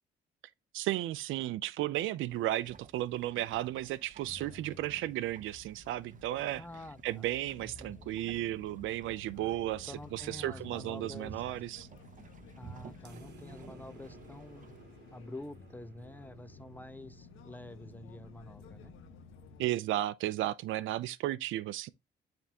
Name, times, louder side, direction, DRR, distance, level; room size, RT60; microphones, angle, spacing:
voice 1, 0.7-6.6 7.0-11.9 19.6-21.9, right 14 dB, 85° right, 0.4 m, -34 dB
sound 1, 2.3-14.8, right 6 dB, 40° right, 0.6 m, -55 dB
sound 2, 4.2-19.6, left 4 dB, 90° left, 1.3 m, -53 dB
voice 2, 6.6-7.3 7.6-8.1 9.8-11.4 12.6-14.7 15.1-18.9, left 1 dB, 10° left, 0.6 m, -48 dB
sound 3, 13.0-17.9, right 6 dB, 55° right, 1.2 m, -59 dB
9.8 x 3.5 x 2.8 m
cardioid pair, 90°, 20 cm